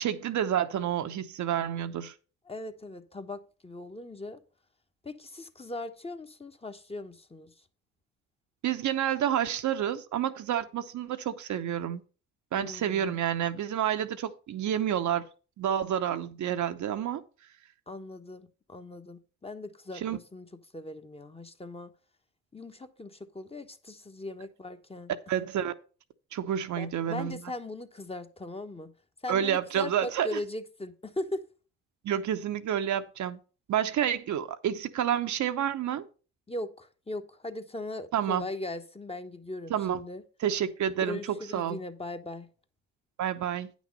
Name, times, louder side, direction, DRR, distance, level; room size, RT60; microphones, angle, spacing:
voice 1, 0.0-2.1 8.6-12.0 12.5-15.3 15.6-17.2 19.9-20.2 25.3-25.7 26.3-27.4 29.3-30.4 32.0-33.4 33.7-36.1 38.1-38.4 39.7-40.0 40.4-41.8 43.2-43.7, right 10 dB, 55° right, 0.8 m, -29 dB
voice 2, 2.5-4.4 5.0-7.5 12.5-13.2 17.9-20.5 20.7-21.9 22.5-25.1 26.7-28.9 29.2-31.4 36.5-40.2 41.0-42.5, left 2 dB, 15° left, 1.1 m, -39 dB
9.4 x 6.2 x 5.4 m
hypercardioid pair, 55°, 35 cm